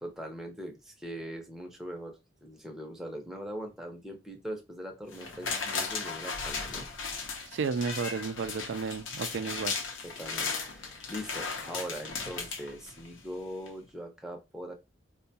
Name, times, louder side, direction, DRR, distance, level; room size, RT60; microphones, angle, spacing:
voice 1, 0.0-6.9 10.0-14.7, equal, ahead, 0.6 m, -41 dB
sound 1, 5.1-13.3 13.7-13.8, left 4 dB, 85° left, 0.7 m, -36 dB
voice 2, 7.5-9.8, right 5 dB, 70° right, 0.3 m, -32 dB
4.5 x 2.2 x 2.7 m
head